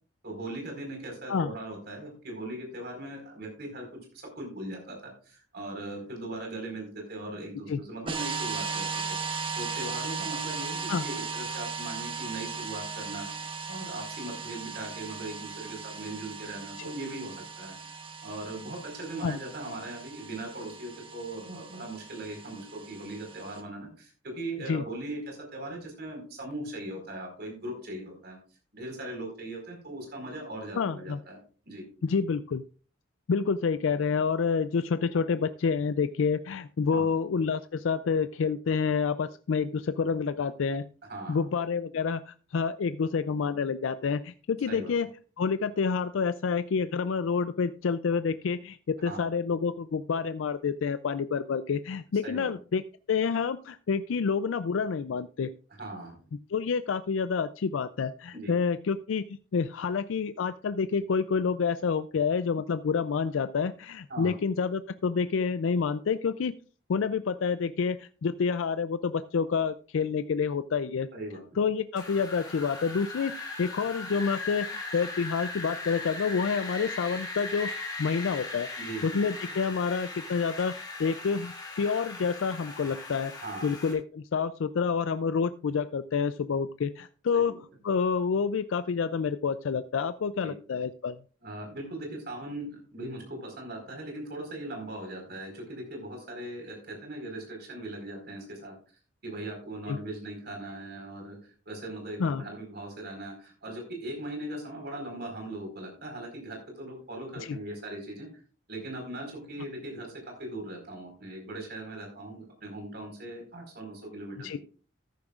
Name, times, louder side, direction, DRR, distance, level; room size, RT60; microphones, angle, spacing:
voice 1, 0.2-13.3 13.7-28.4 28.7-31.4 31.7-31.8 36.9-37.1 41.1-41.4 44.7-44.9 49.1-49.3 52.2-52.5 55.8-56.2 58.3-58.6 64.1-64.4 71.1-71.4 78.8-79.2 83.4-83.7 87.3-87.6 90.4-90.5 91.4-98.7 99.2-101.4 101.7-108.3 108.7-114.6, right 1 dB, 55° right, 2 dB, 4.5 m, -39 dB
sound 1, 8.1-23.6, right 5 dB, 25° right, 1.1 m, -37 dB
voice 2, 30.8-31.2 32.0-32.6 33.3-40.8 41.3-45.1 45.4-52.8 53.1-55.5 56.5-66.5 66.9-71.1 71.6-77.7 78.0-78.7 79.0-80.7 81.0-83.3 83.6-87.5 87.8-91.2 99.9-100.0 102.2-102.4 107.4-107.6 114.4-114.6, left 5 dB, 85° left, 12 dB, 0.4 m, -28 dB
Wind, 72.0-83.9, left 3 dB, 20° left, 2.9 m, -39 dB
14.0 x 11.0 x 2.4 m, 0.39 s
head